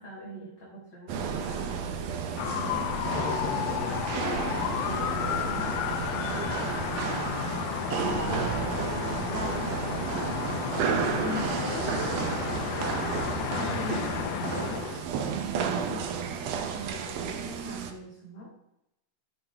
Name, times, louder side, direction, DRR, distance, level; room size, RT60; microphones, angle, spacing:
voice 1, 0.0-4.1 4.7-5.7 6.3-6.6 7.5-7.8 9.3-9.8 11.2-12.2 12.6-13.2 13.5-15.0 15.3-18.5, left 1 dB, 35° left, -7 dB, 2.4 m, -41 dB
sound 1, 1.1-17.9, right 6 dB, 70° right, 1.6 m, -32 dB
sound 2, 2.4-15.0, left 10 dB, 80° left, 2.1 m, -32 dB
voice 2, 3.1-4.0 7.9-11.2 13.4-14.0 15.5-15.9, equal, 15° left, -6 dB, 3.5 m, -40 dB
11.5 x 6.7 x 3.4 m, 0.85 s
omnidirectional pair, 3.7 m